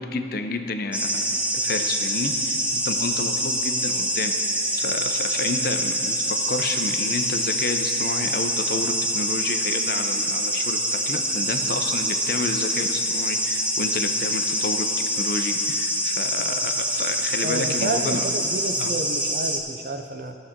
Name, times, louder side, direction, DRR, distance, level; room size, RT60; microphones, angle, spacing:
voice 1, 0.0-4.3 4.7-18.2 18.8-18.9, left 3 dB, 55° left, 6 dB, 0.6 m, -30 dB
sound 1, 0.9-19.6, equal, 5° right, 0.7 m, -25 dB
voice 2, 17.4-20.4, right 2 dB, 50° right, 6 dB, 0.6 m, -30 dB
17.5 x 6.6 x 3.7 m, 2.7 s
head